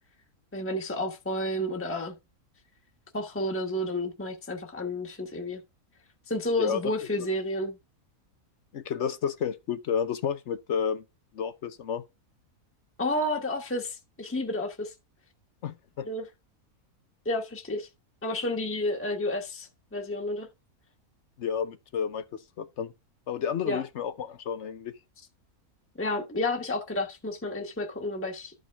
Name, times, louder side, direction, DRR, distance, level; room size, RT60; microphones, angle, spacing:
voice 1, 0.5-2.1 3.1-5.6 6.3-7.8 13.0-14.9 16.0-16.3 17.2-17.9 18.2-20.5 23.7-23.8 26.0-28.5, left 1 dB, 10° left, 1.2 m, -31 dB
voice 2, 6.6-6.9 7.2-7.3 8.7-11.0 11.3-12.0 15.6-16.1 21.4-22.9 23.3-24.9, left 7 dB, 55° left, 0.9 m, -31 dB
13.0 x 5.2 x 3.5 m
omnidirectional pair, 1.6 m